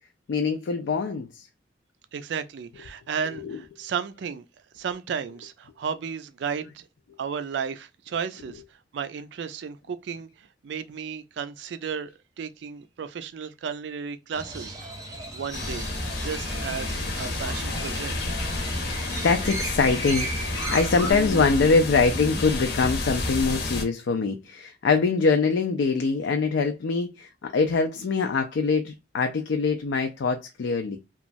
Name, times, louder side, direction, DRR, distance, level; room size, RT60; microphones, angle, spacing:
voice 1, 0.3-1.5 3.4-3.6 18.9-31.0, left 4 dB, 80° left, 0.4 m, -24 dB
voice 2, 2.1-4.5 4.7-6.8 7.2-8.6 8.9-12.1 12.4-14.9 15.3-15.8 16.2-18.1, right 6 dB, 70° right, 0.3 m, -33 dB
Crow, 14.3-21.1, right 2 dB, 20° right, 0.6 m, -36 dB
sound 1, 15.5-23.9, left 2 dB, 65° left, 0.8 m, -30 dB
sound 2, 20.9-22.9, left 1 dB, 30° left, 0.6 m, -37 dB
3.0 x 2.3 x 2.5 m
head